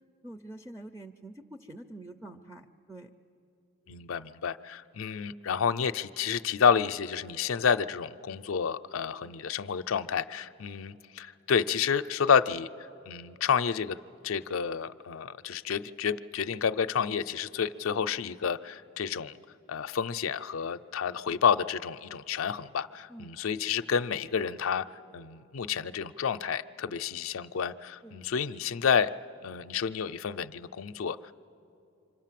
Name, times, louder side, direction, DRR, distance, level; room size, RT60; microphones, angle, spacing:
voice 1, 0.2-3.1 23.1-23.4 28.0-28.2, right 1 dB, 10° right, 3 dB, 0.5 m, -46 dB
voice 2, 3.9-12.7 13.1-14.0 14.2-19.3 19.7-29.1 29.4-31.3, left 7 dB, 85° left, 10 dB, 0.5 m, -29 dB
27.0 x 25.5 x 7.5 m, 2.8 s
head